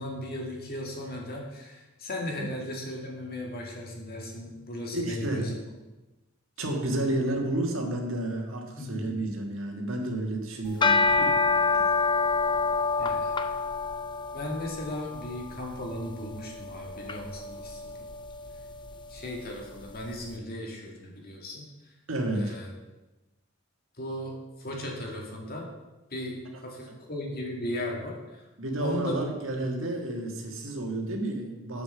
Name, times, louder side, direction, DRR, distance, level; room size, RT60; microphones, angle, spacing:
voice 1, 0.0-5.6 8.8-9.1 13.0-13.3 14.3-18.1 19.1-21.7 22.3-22.7 24.0-24.3 24.6-25.7 26.1-28.4 28.8-29.2, left 1 dB, 50° left, 0 dB, 2.1 m, -36 dB
voice 2, 4.9-5.4 6.6-11.4 11.7-11.9 22.1-22.6 28.6-31.8, right 1 dB, 85° right, 2 dB, 1.7 m, -31 dB
sound 1, 10.7-20.0, left 4 dB, 25° left, 0.5 m, -28 dB
7.0 x 6.8 x 6.8 m, 1.1 s
head